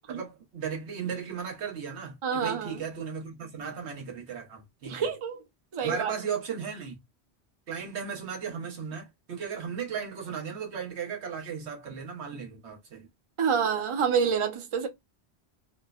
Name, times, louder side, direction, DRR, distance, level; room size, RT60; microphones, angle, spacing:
voice 1, 0.1-5.1 5.8-7.0 7.7-13.1, right 7 dB, 85° right, 1.2 m, -36 dB
voice 2, 2.2-2.8 4.9-5.4 5.7-6.1 13.4-14.9, right 6 dB, 45° right, 0.4 m, -27 dB
3.0 x 2.0 x 2.3 m
omnidirectional pair, 1.1 m